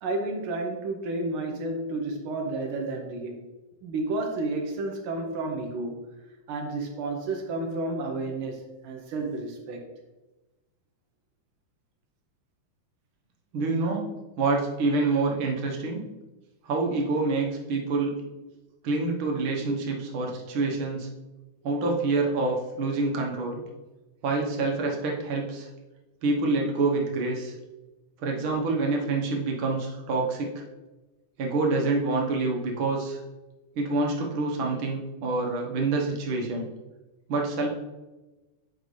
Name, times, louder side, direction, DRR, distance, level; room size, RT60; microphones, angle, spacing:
voice 1, 0.0-3.4 3.8-6.0 6.5-9.9, right 2 dB, 85° right, 2 dB, 1.1 m, -31 dB
voice 2, 13.5-14.0 14.4-16.0 16.7-18.1 18.8-21.1 21.6-23.6 24.2-25.7 26.2-27.5 28.2-30.6 31.4-33.2 33.7-36.7 37.3-37.7, right 3 dB, 60° right, 0 dB, 1.4 m, -27 dB
8.8 x 5.2 x 3.2 m, 1.1 s
omnidirectional pair, 3.5 m